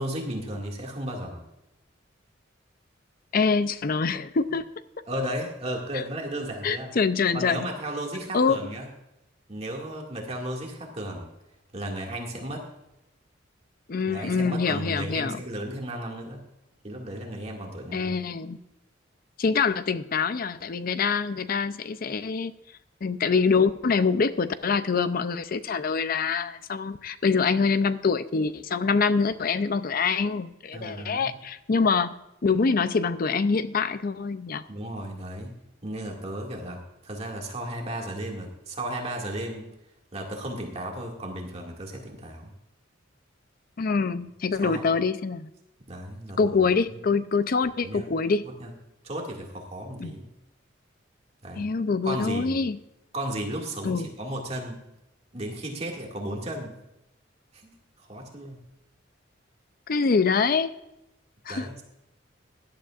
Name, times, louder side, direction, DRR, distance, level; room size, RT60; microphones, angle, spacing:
voice 1, 0.0-1.4 5.1-6.9 7.3-8.9 9.5-11.3 11.7-12.7 14.1-16.4 16.8-18.1 30.7-31.3 34.7-35.5 35.8-39.6 40.1-42.5 44.6-44.9 45.9-46.6 46.9-47.0 47.8-48.0 48.6-48.7 49.0-50.3 51.4-51.7 52.0-52.6 53.1-54.8 55.3-56.8 57.6-57.7 58.0-58.6 61.5-61.8, right 1 dB, 35° right, 0 dB, 2.1 m, -34 dB
voice 2, 3.3-4.6 5.9-6.0 6.6-7.7 8.3-8.6 13.9-15.4 17.9-18.6 19.4-22.5 23.0-32.2 32.4-34.6 43.8-45.5 46.4-48.4 50.0-50.1 51.6-52.8 53.8-54.1 59.9-60.7 61.5-61.7, left 5 dB, 50° left, 13 dB, 0.5 m, -25 dB
17.0 x 11.5 x 2.5 m, 0.91 s
head